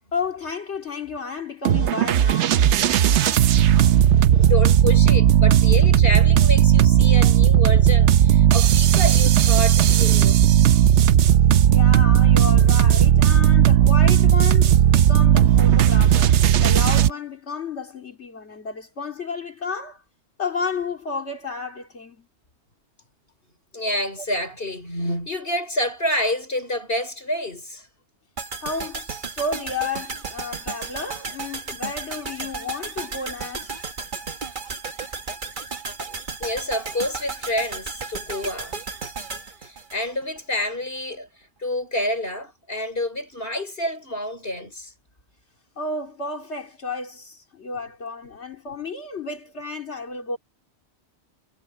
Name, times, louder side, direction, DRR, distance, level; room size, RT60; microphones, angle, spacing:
voice 1, 0.1-2.6 11.7-20.0 20.4-22.3 24.2-24.3 28.6-33.8 45.8-50.4, left 4 dB, 80° left, 2.8 m, -32 dB
sound 1, 1.7-17.1, right 10 dB, 90° right, 0.9 m, -16 dB
voice 2, 2.6-4.0 4.3-10.4 23.7-27.9 36.1-38.8 39.6-41.3 41.6-44.9, left 1 dB, 55° left, 5.7 m, -28 dB
sound 2, 28.4-40.5 40.8-40.9, right 4 dB, 45° right, 1.5 m, -34 dB
omnidirectional pair, 1.1 m